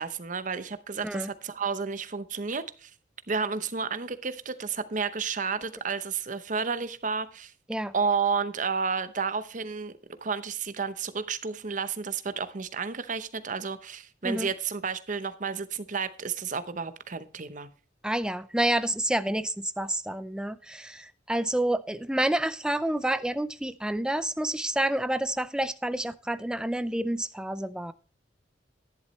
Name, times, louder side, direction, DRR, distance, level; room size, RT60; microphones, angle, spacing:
voice 1, 0.0-2.9 3.3-7.5 7.9-9.9 10.2-17.7, right 5 dB, 45° right, 0.8 m, -31 dB
voice 2, 18.0-27.9, right 1 dB, 5° right, 0.4 m, -29 dB
11.0 x 10.5 x 3.1 m
head